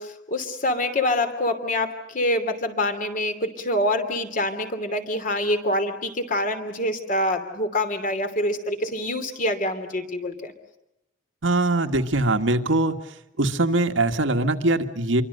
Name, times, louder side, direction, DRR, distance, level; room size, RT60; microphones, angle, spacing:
voice 1, 0.0-10.5, left 1 dB, 45° left, 7 dB, 2.9 m, -26 dB
voice 2, 11.4-13.0 13.4-15.2, right 2 dB, 90° right, 6 dB, 1.7 m, -22 dB
28.0 x 23.5 x 6.6 m, 0.90 s
head